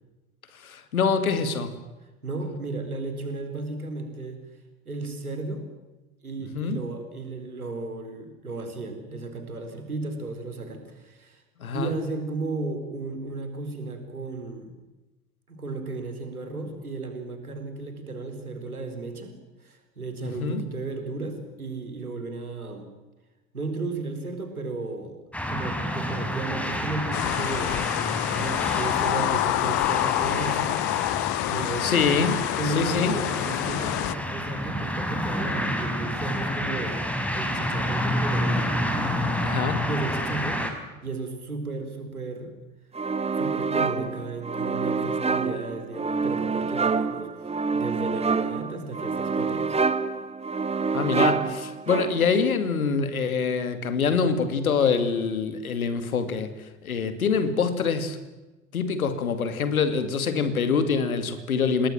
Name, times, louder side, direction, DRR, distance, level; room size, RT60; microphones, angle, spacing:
voice 1, 0.5-1.7 6.5-6.8 11.6-11.9 20.2-20.7 31.8-32.4 32.7-33.2 39.4-39.9 50.9-58.2 58.7-61.9, left 5 dB, 75° left, 11 dB, 2.6 m, -25 dB
voice 2, 1.3-1.6 2.2-4.4 4.9-5.7 6.2-11.4 11.7-14.7 15.5-22.9 23.5-25.2 25.5-27.8 28.3-30.9 31.5-32.0 32.6-37.0 37.3-39.4 39.9-40.6 41.0-42.6 43.4-47.3 47.7-49.8, right 3 dB, 80° right, 6 dB, 4.2 m, -34 dB
sound 1, 25.3-40.7, equal, 5° left, 4.5 m, -29 dB
sound 2, 27.1-34.1, left 19 dB, 45° left, 0.9 m, -27 dB
sound 3, 42.9-52.4, right 4 dB, 15° right, 1.3 m, -27 dB
28.0 x 20.5 x 7.6 m, 1.1 s
figure-of-eight pair, 65°, 43 cm